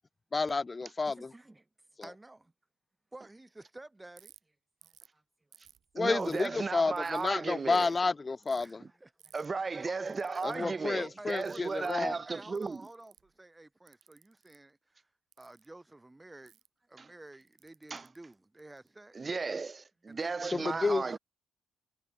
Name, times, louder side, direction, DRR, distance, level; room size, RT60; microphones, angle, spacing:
voice 1, 0.3-1.2 5.9-8.8 10.4-12.1 20.5-21.0, left 3 dB, 25° left, 1.0 m, -30 dB
voice 2, 1.0-1.7 2.0-2.5 3.1-4.5 4.8-5.2 8.6-9.3 9.9-10.1 10.6-15.1 15.4-16.6 16.9-19.2 20.1-21.2, right 2 dB, 15° right, 3.4 m, -51 dB
Ratchet pawl, 4.2-4.4 4.8-5.1 5.5-6.5 7.0-7.3 7.7-8.0 8.4-8.7 9.2-9.5 10.1-10.6 11.3-12.0 12.6-13.3 13.9-14.6 15.3-15.7 16.5-16.7 17.4-18.9, right 9 dB, 65° right, 4.6 m, -60 dB
voice 3, 6.0-7.9 8.8-8.9 9.3-12.8 17.0-17.1 17.9-18.1 19.1-21.2, right 4 dB, 30° right, 0.8 m, -35 dB
cardioid pair, 90°, 0 cm